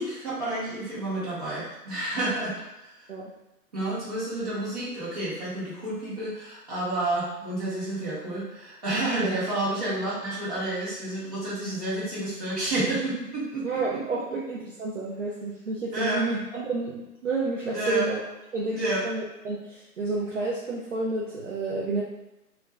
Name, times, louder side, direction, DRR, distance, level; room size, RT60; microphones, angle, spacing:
voice 1, 0.0-2.6 3.0-3.1 3.7-13.7 15.9-16.2 17.7-18.1 18.7-19.0, right 1 dB, 25° right, -10 dB, 1.0 m, -30 dB
voice 2, 13.6-18.2 18.5-18.8 19.0-22.0, right 3 dB, 50° right, -5 dB, 0.6 m, -30 dB
2.5 x 2.3 x 3.1 m, 0.96 s
figure-of-eight pair, 155°, 47 cm